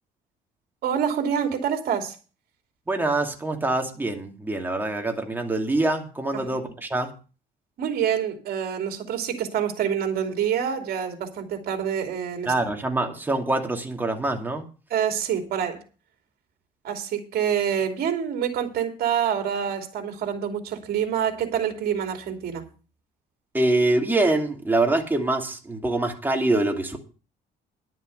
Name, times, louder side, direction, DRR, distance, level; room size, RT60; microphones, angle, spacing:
voice 1, 0.8-2.1 6.3-6.6 7.8-12.5 14.9-15.8 16.8-22.6, right 8 dB, 65° right, 4 dB, 2.9 m, -26 dB
voice 2, 2.9-7.1 12.5-14.6 23.5-27.0, right 2 dB, 10° right, 2 dB, 2.5 m, -24 dB
11.5 x 7.5 x 6.5 m, 0.35 s
cardioid pair, 110°, 17 cm